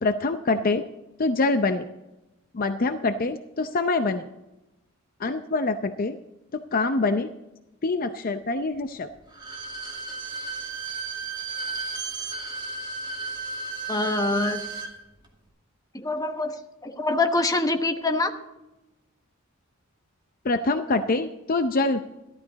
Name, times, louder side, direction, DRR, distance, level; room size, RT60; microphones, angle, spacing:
voice 1, 0.0-0.9 1.2-1.9 2.5-4.2 5.2-6.2 6.5-7.3 7.8-9.1 20.4-22.0, left 3 dB, 45° left, 8 dB, 0.6 m, -25 dB
Bowed string instrument, 9.3-14.9 15.2-15.3, right 4 dB, 20° right, 2.3 m, -34 dB
voice 2, 13.9-14.6 15.9-18.3, left 2 dB, 20° left, 5 dB, 1.1 m, -25 dB
14.0 x 12.5 x 4.1 m, 0.96 s
head